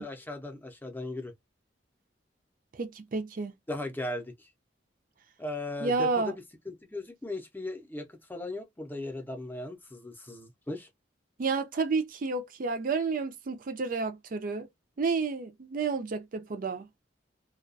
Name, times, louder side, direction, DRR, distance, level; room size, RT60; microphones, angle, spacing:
voice 1, 0.0-1.3 3.7-4.5 5.4-10.9, left 2 dB, 10° left, 0.6 m, -37 dB
voice 2, 2.7-3.5 5.8-6.3 11.4-14.7 15.0-16.9, right 4 dB, 50° right, 0.4 m, -30 dB
2.3 x 2.2 x 2.5 m
head